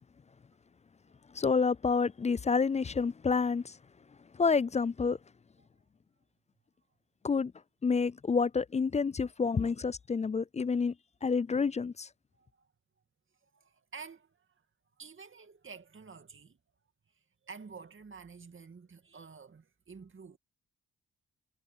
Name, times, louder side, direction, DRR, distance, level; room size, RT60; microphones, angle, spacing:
voice 1, 1.3-3.8 4.4-5.2 7.2-7.5 7.8-10.9 11.2-12.1, left 5 dB, 25° left, 0.4 m, -28 dB
voice 2, 12.3-12.7 13.4-14.5 15.0-16.6 17.4-20.4, right 5 dB, 45° right, 2.4 m, -50 dB
supercardioid pair, 50°, 29 cm